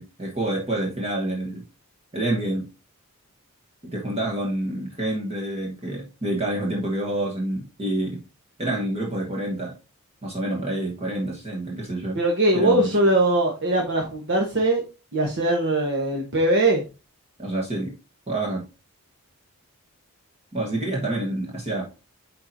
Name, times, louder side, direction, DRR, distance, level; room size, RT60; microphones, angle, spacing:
voice 1, 0.0-1.6 2.1-2.7 3.9-8.2 8.6-9.8 10.2-12.2 12.5-12.9 17.4-18.0 18.3-18.7 20.5-21.9, right 1 dB, 25° right, -2 dB, 1.3 m, -27 dB
voice 2, 12.1-14.8 15.1-16.8, right 1 dB, 55° right, 0 dB, 1.2 m, -21 dB
9.5 x 4.4 x 2.7 m, 0.29 s
head